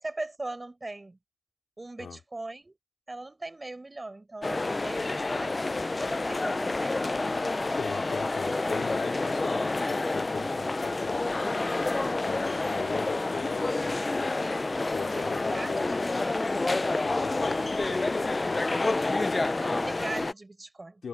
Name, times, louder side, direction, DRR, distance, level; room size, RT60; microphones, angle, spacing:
voice 1, 0.0-1.2 1.8-2.7 3.1-5.6 6.3-7.4 15.1-16.6 19.6-21.0, right 2 dB, 15° right, 7.7 m, -40 dB
sound 1, 4.4-20.3, left 2 dB, 20° left, 0.5 m, -28 dB
voice 2, 7.8-11.4 12.1-14.4 14.9-16.1 17.0-18.9 21.0-21.1, left 6 dB, 45° left, 4.4 m, -40 dB
cardioid pair, 90°, 0 cm